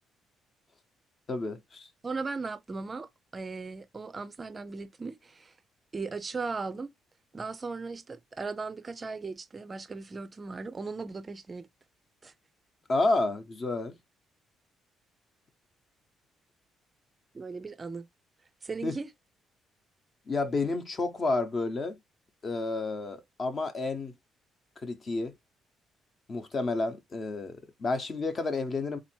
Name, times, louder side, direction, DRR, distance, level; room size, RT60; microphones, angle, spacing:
voice 1, 1.3-1.9 12.9-14.0 18.8-19.0 20.3-22.0 22.4-24.1 24.8-25.3 26.3-29.0, left 3 dB, 35° left, 0.9 m, -30 dB
voice 2, 2.0-5.5 5.9-6.9 7.3-11.7 12.2-12.3 17.3-18.1 18.6-19.1, right 4 dB, 25° right, 0.5 m, -37 dB
3.8 x 2.7 x 4.4 m
cardioid pair, 115°, 0 cm